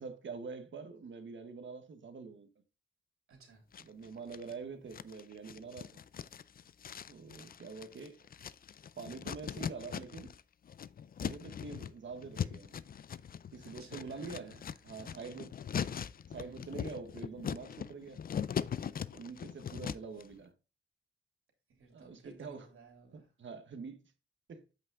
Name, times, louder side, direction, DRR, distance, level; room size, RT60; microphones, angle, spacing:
voice 1, 0.0-2.5 3.8-6.0 7.1-8.2 9.0-10.3 11.2-12.7 13.5-14.5 14.8-15.5 16.3-18.2 19.1-20.5 21.9-22.7 23.1-24.0 24.5-24.6, right 5 dB, 65° right, 1.3 m, -45 dB
voice 2, 3.3-3.6 13.6-15.3 21.7-23.3, right 3 dB, 90° right, 3.2 m, -58 dB
sound 1, 3.7-4.5 4.9-10.4 10.7-20.2, left 8 dB, 45° left, 0.4 m, -40 dB
8.2 x 5.4 x 3.7 m
wide cardioid pair, 120°, 21 cm